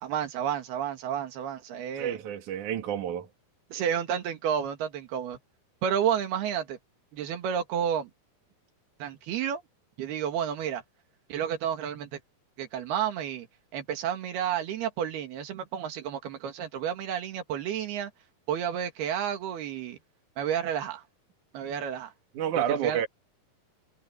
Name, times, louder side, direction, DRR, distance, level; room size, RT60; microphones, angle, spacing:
voice 1, 0.0-2.2 3.7-5.4 5.8-6.8 7.1-8.1 9.0-9.6 10.0-10.8 11.3-12.2 12.6-13.5 13.7-18.1 18.5-20.0 20.4-21.0 21.5-22.1 22.6-23.0, right 9 dB, 90° right, 4.0 m, -31 dB
voice 2, 2.0-3.3 22.3-23.1, right 9 dB, 55° right, 3.2 m, -29 dB
omnidirectional pair, 4.4 m